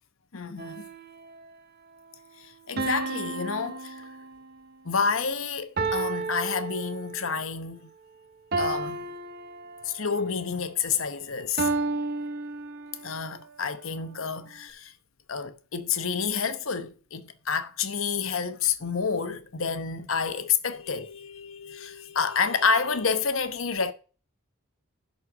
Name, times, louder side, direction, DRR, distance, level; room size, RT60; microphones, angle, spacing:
voice 1, 0.3-0.9 2.4-4.1 4.8-7.9 8.6-9.0 9.8-11.7 13.0-14.9 15.3-23.9, left 5 dB, 75° left, 0.9 m, -29 dB
sound 1, 0.6-1.4 2.8-4.6 5.8-7.4 8.5-10.2 11.6-13.2, right 3 dB, 45° right, 0.8 m, -32 dB
11.0 x 4.2 x 6.1 m
head